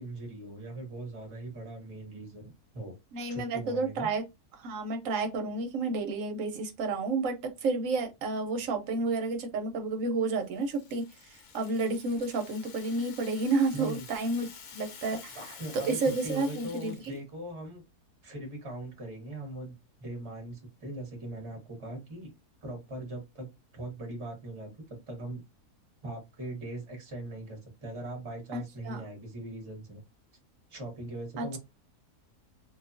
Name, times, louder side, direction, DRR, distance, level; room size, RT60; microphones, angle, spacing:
voice 1, 0.0-2.9 3.3-4.1 13.7-14.1 15.1-17.8 18.2-19.7 20.0-22.3 22.6-25.4 26.0-30.0 30.7-31.6, right 1 dB, 25° right, 0.8 m, -40 dB
voice 2, 3.1-4.2 4.6-14.5 14.7-15.2 15.7-16.9 28.5-29.0 31.4-31.6, right 3 dB, 65° right, 1.0 m, -31 dB
Rattle (instrument), 10.3-17.2, left 6 dB, 80° left, 1.2 m, -49 dB
2.6 x 2.3 x 2.4 m
omnidirectional pair, 1.6 m